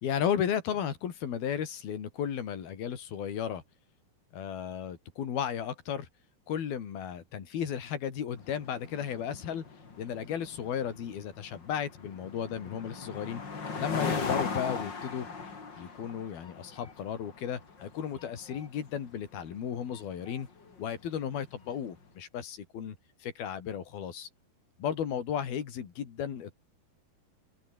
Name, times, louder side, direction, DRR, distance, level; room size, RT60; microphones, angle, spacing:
voice 1, 0.0-3.6 4.3-6.1 6.5-9.6 10.0-13.4 13.8-15.3 15.7-20.5 20.8-23.0 23.2-24.3 24.8-26.6, left 8 dB, 65° left, 4.8 m, -34 dB
sound 1, 8.4-21.9, left 4 dB, 30° left, 3.3 m, -39 dB
open air
omnidirectional pair, 4.7 m